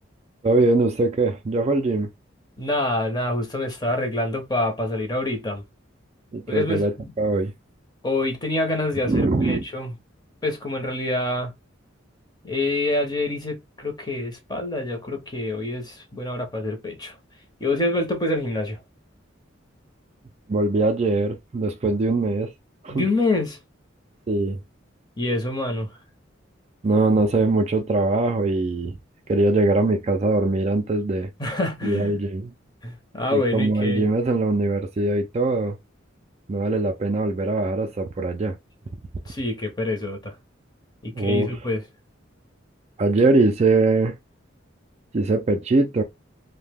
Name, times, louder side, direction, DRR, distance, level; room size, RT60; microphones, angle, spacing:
voice 1, 0.4-2.1 6.3-7.5 9.1-9.6 20.5-22.5 22.8-23.1 24.3-24.6 26.8-29.0 29.3-31.3 31.8-32.5 33.3-35.8 36.5-38.6 41.1-41.6 43.0-44.1 45.1-46.0, right 2 dB, 35° right, 0.4 m, -22 dB
voice 2, 2.6-5.6 6.5-7.1 8.0-9.9 10.4-11.5 12.4-17.1 17.6-18.8 22.9-23.6 25.2-26.0 31.4-32.2 32.8-34.1 39.3-40.3 41.0-41.8, left 2 dB, 20° left, 0.8 m, -26 dB
2.7 x 2.1 x 3.4 m
head